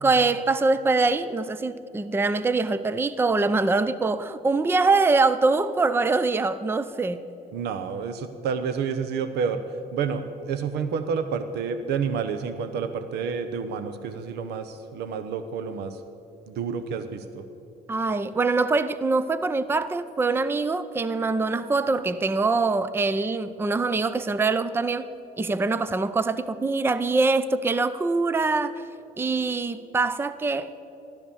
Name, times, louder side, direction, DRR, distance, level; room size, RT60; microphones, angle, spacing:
voice 1, 0.0-7.2 17.9-25.1 25.4-28.7 29.2-30.7, right 3 dB, 15° right, 0.5 m, -24 dB
voice 2, 7.5-9.6 9.9-16.0 16.5-17.4, right 6 dB, 75° right, 0.9 m, -29 dB
15.0 x 12.0 x 7.1 m
cardioid pair, 110°, 17 cm